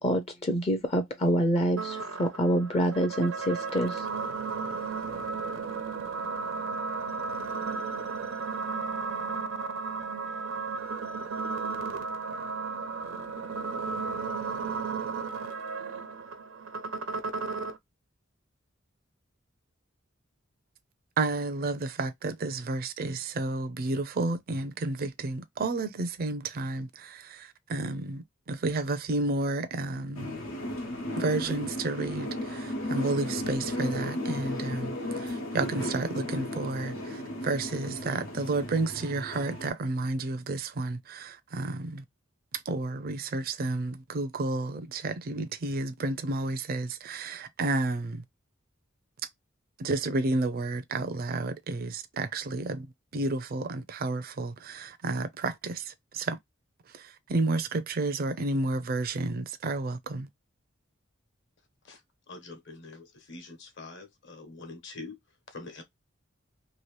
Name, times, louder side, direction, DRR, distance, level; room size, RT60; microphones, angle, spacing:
voice 1, 0.0-4.1, equal, 30° left, 0.5 m, -26 dB
sound 1, 1.8-17.8, right 4 dB, 85° right, 0.7 m, -34 dB
voice 2, 21.2-30.4 31.2-42.0 42.7-48.2 49.8-52.9 53.1-56.4 56.9-60.3, right 2 dB, 45° right, 0.4 m, -31 dB
sound 2, 30.1-39.7, left 1 dB, 90° left, 1.1 m, -35 dB
voice 3, 62.3-65.2 65.5-65.8, left 3 dB, 60° left, 1.1 m, -44 dB
3.0 x 2.7 x 3.1 m
head